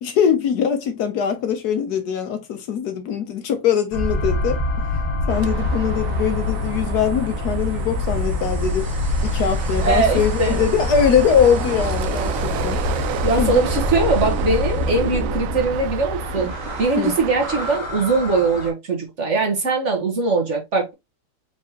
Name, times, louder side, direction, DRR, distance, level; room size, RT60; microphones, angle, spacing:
voice 1, 0.0-4.6 5.3-8.9 9.2-12.8 13.4-13.6 16.9-17.2, left 7 dB, 70° left, 1.2 m, -22 dB
sound 1, 3.9-18.7, left 2 dB, 30° left, 1.0 m, -25 dB
sound 2, 5.3-17.8, right 8 dB, 70° right, 0.8 m, -31 dB
voice 2, 9.8-10.6 13.2-16.5 16.8-20.9, right 3 dB, 45° right, 1.3 m, -21 dB
5.0 x 3.4 x 2.8 m
omnidirectional pair, 1.9 m